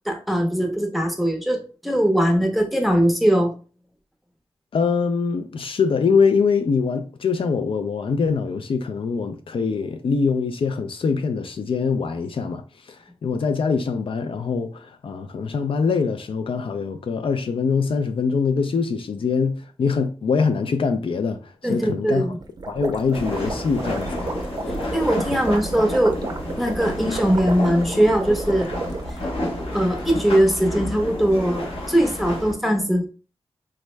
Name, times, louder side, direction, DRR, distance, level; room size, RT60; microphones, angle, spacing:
voice 1, 0.1-3.5 21.6-22.4 24.9-26.2 26.6-28.7 29.7-33.1, right 1 dB, ahead, 0.7 m, -20 dB
voice 2, 4.7-22.4 22.7-24.3, left 5 dB, 65° left, 0.3 m, -23 dB
sound 1, 22.4-29.2, right 3 dB, 45° right, 0.5 m, -33 dB
sound 2, 23.1-32.5, left 1 dB, 90° left, 1.1 m, -30 dB
3.5 x 2.0 x 3.1 m
wide cardioid pair, 75°, 10 cm